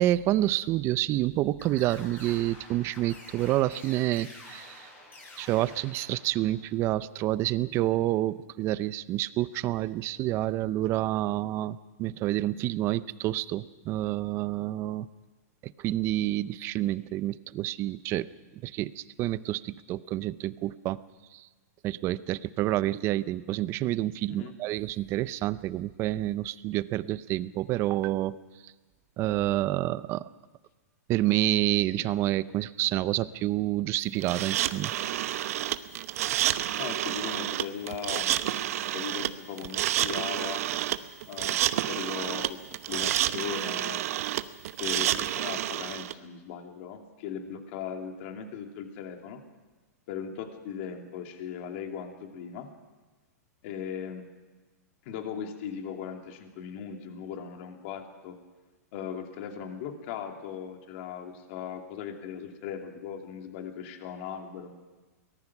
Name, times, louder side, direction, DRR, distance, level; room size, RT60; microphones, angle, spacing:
voice 1, 0.0-4.9 5.4-15.1 15.6-18.3 18.6-21.0 21.3-21.5 21.8-28.4 28.6-28.7 29.2-30.2 31.1-34.9, right 15 dB, 30° right, 17 dB, 0.6 m, -28 dB
sound 1, 1.6-6.7, left 2 dB, 20° left, 6.9 m, -49 dB
sound 2, 34.2-46.1, right 12 dB, 60° right, 0.9 m, -29 dB
voice 2, 36.8-38.4 38.7-40.6 41.3-42.6 42.9-44.1 44.8-49.4 50.1-52.7 53.6-54.2 55.0-58.4 58.9-64.7, left 8 dB, 45° left, 4 dB, 2.7 m, -38 dB
23.5 x 19.0 x 6.0 m, 1.3 s
hypercardioid pair, 145°, 9 cm